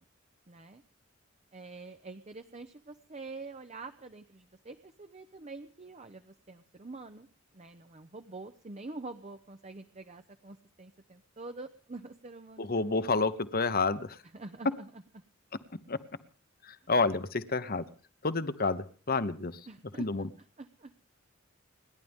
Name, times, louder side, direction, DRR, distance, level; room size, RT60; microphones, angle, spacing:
voice 1, 0.5-0.8 1.5-7.3 7.5-13.2 14.3-14.9 19.7-20.1 20.6-20.9, right 3 dB, 35° right, 8 dB, 0.7 m, -46 dB
voice 2, 12.6-14.2 15.9-16.0 16.6-17.9 18.2-19.6 20.0-20.3, left 3 dB, 45° left, 12 dB, 1.1 m, -29 dB
29.5 x 11.0 x 3.6 m, 0.41 s
head